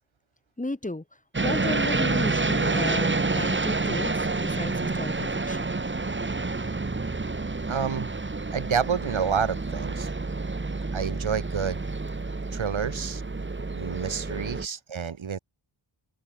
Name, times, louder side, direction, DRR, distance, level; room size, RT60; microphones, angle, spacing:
voice 1, 0.6-1.0 1.4-5.7 12.5-12.6, left 2 dB, 15° left, 7.6 m, -34 dB
sound 1, 1.3-14.7, right 3 dB, 25° right, 2.5 m, -28 dB
voice 2, 7.7-8.1 8.5-10.1 10.9-11.8 12.5-13.2 13.7-15.4, right 7 dB, 75° right, 6.1 m, -29 dB
wide cardioid pair, 140°, 48 cm